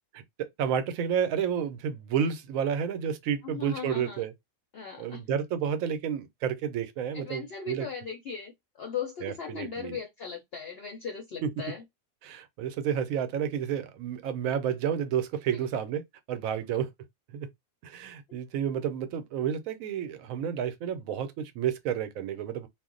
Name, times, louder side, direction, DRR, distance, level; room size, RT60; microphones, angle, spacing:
voice 1, 0.1-4.3 5.0-7.9 9.2-10.0 11.4-11.6 12.2-16.0 16.3-16.9 17.3-17.5 17.8-22.7, right 8 dB, 80° right, 1.0 m, -30 dB
voice 2, 3.4-4.2 4.7-5.2 7.1-8.5 8.8-11.8, left 6 dB, 60° left, 0.7 m, -38 dB
2.4 x 2.0 x 3.7 m
omnidirectional pair, 1.4 m